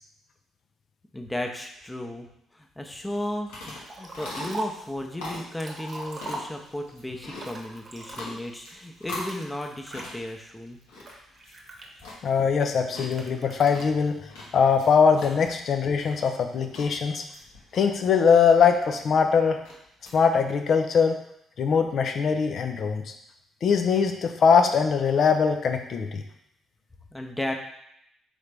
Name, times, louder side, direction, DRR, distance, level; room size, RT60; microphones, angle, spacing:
voice 1, 1.1-2.3 2.5-10.8 27.1-27.5, left 1 dB, 15° left, 3 dB, 0.7 m, -34 dB
sound 1, 3.0-20.1, left 2 dB, 85° left, 1.0 m, -43 dB
Liquid, 3.9-4.9 5.4-6.9 7.4-8.6 9.3-10.1 10.7-12.3 13.1-13.8, right 1 dB, 45° right, 0.9 m, -39 dB
voice 2, 12.2-14.2 14.5-17.2 17.7-19.6 20.1-21.1 21.6-23.0 23.6-26.2, left 6 dB, 60° left, 6 dB, 0.5 m, -21 dB
3.8 x 3.3 x 3.4 m, 0.76 s
hypercardioid pair, 55°, 0 cm